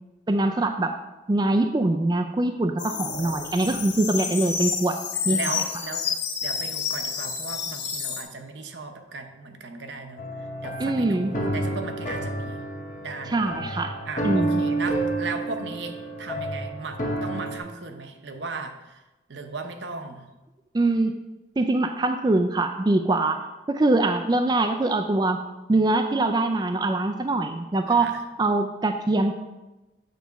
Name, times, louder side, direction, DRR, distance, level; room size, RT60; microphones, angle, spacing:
voice 1, 0.3-0.9 1.3-5.0 5.3-5.4 10.8-11.3 13.3-13.9 14.2-14.6 20.7-21.1 21.6-25.4 25.7-29.3, right 2 dB, 20° right, 5 dB, 0.3 m, -23 dB
sound 1, 2.8-8.2, left 6 dB, 70° left, 1.2 m, -29 dB
voice 2, 5.2-6.1 6.4-10.3 10.6-12.7 13.0-13.4 14.1-19.0 19.3-20.3 27.9-28.2, right 3 dB, 70° right, 6 dB, 0.8 m, -36 dB
sound 2, 10.2-17.6, right 1 dB, 40° left, 0.9 m, -29 dB
8.2 x 4.1 x 5.8 m, 1.1 s
head